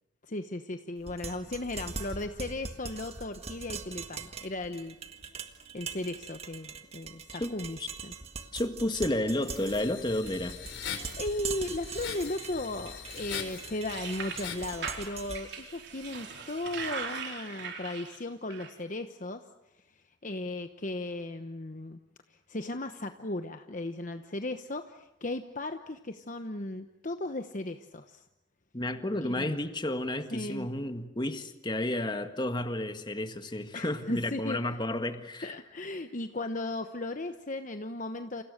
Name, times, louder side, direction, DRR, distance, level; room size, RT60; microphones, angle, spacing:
voice 1, 0.2-5.0 5.7-8.1 11.2-19.4 19.7-22.0 22.3-28.2 29.2-29.6 30.3-30.7 33.7-34.6 35.4-38.4, left 2 dB, 40° left, 8 dB, 1.0 m, -36 dB
sound 1, 1.0-17.0, right 5 dB, 30° right, 1.8 m, -42 dB
voice 2, 8.5-10.5 28.7-35.5, left 1 dB, 25° left, 8 dB, 1.8 m, -31 dB
sound 2, 9.4-14.7, left 7 dB, 70° left, 4.3 m, -41 dB
sound 3, 13.9-18.2 18.5-18.7, right 5 dB, 60° right, 4.6 m, -40 dB
29.5 x 29.0 x 6.6 m, 0.88 s
head